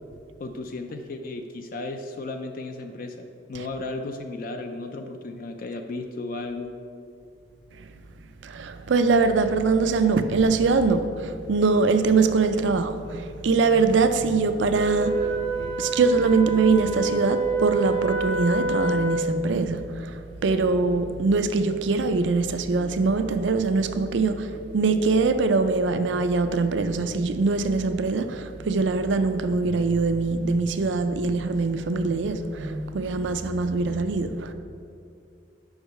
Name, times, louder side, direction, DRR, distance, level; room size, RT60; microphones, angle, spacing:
voice 1, 0.4-6.7, left 2 dB, 50° left, 0.4 m, -34 dB
voice 2, 8.4-34.5, right 4 dB, 75° right, 0.4 m, -23 dB
Wind instrument woodwind instrument, 14.7-19.4, right 3 dB, 80° left, 1.4 m, -27 dB
5.5 x 4.8 x 6.4 m
head